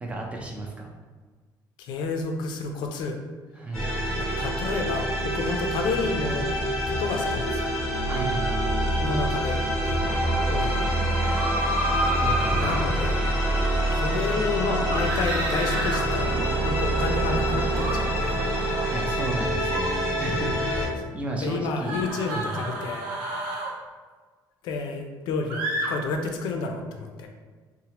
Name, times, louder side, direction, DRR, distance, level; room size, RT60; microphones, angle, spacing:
voice 1, 0.0-0.9 3.6-3.9 8.1-8.6 12.2-13.0 18.9-22.0 22.3-22.6, right 2 dB, 15° right, 0 dB, 0.3 m, -33 dB
voice 2, 1.8-3.2 4.2-6.5 6.9-7.7 8.7-10.0 10.5-10.9 12.6-13.2 13.9-18.4 20.8-21.1 21.4-23.1 24.6-27.3, left 4 dB, 70° left, 4 dB, 0.4 m, -30 dB
sound 1, 3.7-20.9, right 1 dB, 5° left, 1.0 m, -26 dB
sound 2, 10.0-18.9, right 1 dB, 60° right, 0.9 m, -34 dB
sound 3, 11.2-12.7 14.9-16.0 17.7-18.0 19.6-19.9 21.8-23.7 25.5-25.9, right 1 dB, 85° right, 0.6 m, -29 dB
2.8 x 2.0 x 2.9 m, 1.4 s
cardioid pair, 170°, 8 cm